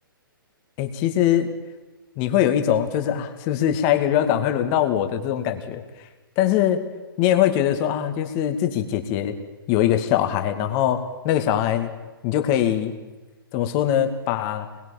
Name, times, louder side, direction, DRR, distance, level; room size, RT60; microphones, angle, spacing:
voice 1, 0.8-1.5 2.2-5.8 6.4-6.8 7.2-9.4 9.7-11.9 12.2-13.0 13.5-14.7, left 11 dB, 35° left, 8 dB, 2.4 m, -22 dB
26.5 x 22.0 x 7.3 m, 1.2 s
figure-of-eight pair, 125°, 12 cm